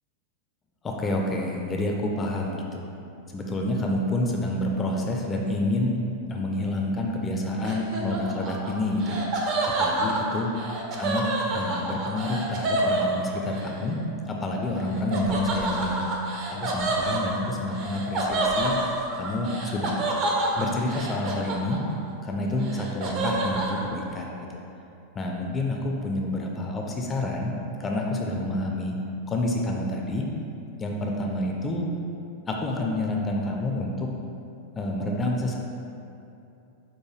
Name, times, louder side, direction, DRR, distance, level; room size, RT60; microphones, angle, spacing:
voice 1, 0.8-2.8 3.3-6.0 6.3-9.3 9.6-10.5 11.0-11.3 11.5-14.0 14.3-16.0 16.5-18.8 19.2-20.0 20.6-21.8 22.2-24.5 25.2-27.5 27.8-28.9 29.3-30.3 30.8-31.9 32.5-34.1 34.8-35.6, left 1 dB, 20° left, 0 dB, 0.3 m, -28 dB
Laughter, 7.6-13.7 15.1-22.1 22.4-23.8, right 2 dB, 40° right, 0.5 m, -28 dB
4.7 x 2.1 x 2.9 m, 2.7 s
figure-of-eight pair, 90°, 0 cm